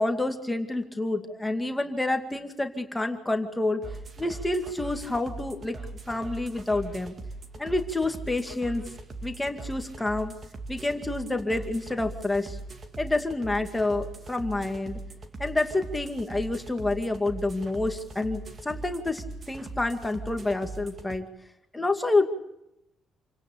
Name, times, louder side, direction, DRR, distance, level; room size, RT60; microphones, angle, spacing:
voice 1, 0.0-3.8 4.2-5.8 6.1-7.1 7.6-8.9 9.2-10.3 10.7-12.6 13.0-15.0 15.4-21.3 21.7-22.3, left 2 dB, 10° left, 5 dB, 2.3 m, -28 dB
sound 1, 3.8-21.2, right 2 dB, 35° right, 2.3 m, -40 dB
28.5 x 17.5 x 8.5 m, 0.87 s
cardioid pair, 140°, 0 cm